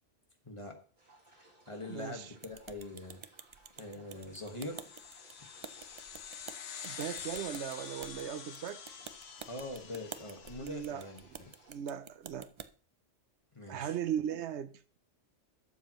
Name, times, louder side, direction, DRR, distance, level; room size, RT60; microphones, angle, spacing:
voice 1, 0.4-0.8 1.3-3.2 3.8-4.8 9.5-11.5 13.5-14.0, left 2 dB, 25° left, 1.5 m, -43 dB
sound 1, 1.0-11.8, right 2 dB, 35° right, 3.9 m, -63 dB
voice 2, 1.9-2.3 6.8-8.8 10.6-11.4 11.7-12.5 13.7-15.0, right 9 dB, 75° right, 0.9 m, -38 dB
sound 2, 2.4-12.7, right 6 dB, 55° right, 0.3 m, -50 dB
sound 3, 4.4-11.2, left 8 dB, 65° left, 1.0 m, -47 dB
12.0 x 7.1 x 3.0 m
omnidirectional pair, 1.2 m